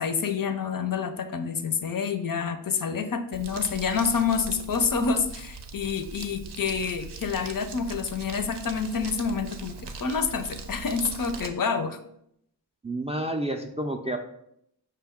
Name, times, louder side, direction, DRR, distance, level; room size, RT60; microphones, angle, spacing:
voice 1, 0.0-9.7 10.0-12.0, left 5 dB, 50° left, 8 dB, 0.5 m, -28 dB
Crumpling crinkling, 3.3-11.5, right 3 dB, 70° right, 0.6 m, -40 dB
voice 2, 12.8-14.2, right 1 dB, 15° right, 3 dB, 0.3 m, -30 dB
5.6 x 2.2 x 3.5 m, 0.75 s
cardioid pair, 45°, 43 cm